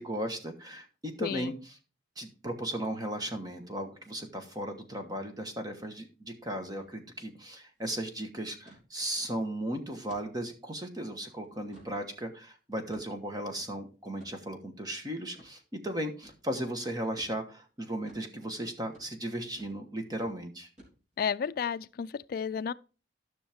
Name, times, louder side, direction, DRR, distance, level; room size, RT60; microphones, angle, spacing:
voice 1, 0.0-1.7 2.2-20.7, right 1 dB, 20° right, 1.3 m, -36 dB
voice 2, 1.2-1.5 21.2-22.7, left 7 dB, 55° left, 0.3 m, -32 dB
sound 1, 6.8-6.9 7.2-7.3 7.7-8.0 8.7-8.9 9.3-9.5 10.1-10.3 10.8-10.9 11.4-12.0 12.9-13.3 14.2-14.4 15.4-15.5 16.2-16.4 17.2-17.4 18.1-18.3 18.9-19.1 19.6-19.8 20.1-20.4 20.8-21.2, equal, 40° right, 3.3 m, -55 dB
13.0 x 6.3 x 3.5 m
head